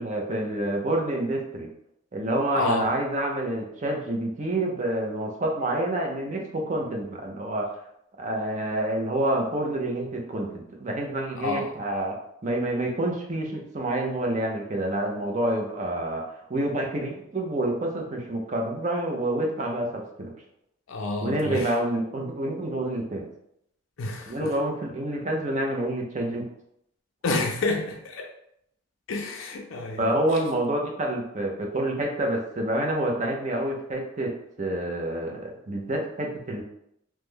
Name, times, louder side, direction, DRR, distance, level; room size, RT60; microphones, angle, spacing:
voice 1, 0.0-1.7 2.1-7.7 8.2-10.5 10.8-12.1 12.4-16.2 16.5-20.3 21.2-23.3 24.3-26.4 30.0-34.3 34.6-36.6, right 1 dB, 35° right, 0 dB, 0.6 m, -28 dB
voice 2, 2.5-2.9 11.4-11.7 20.9-21.7 24.0-24.5 27.2-28.3 29.1-30.1, left 3 dB, 70° left, 2 dB, 0.4 m, -29 dB
3.0 x 2.1 x 3.5 m, 0.74 s
head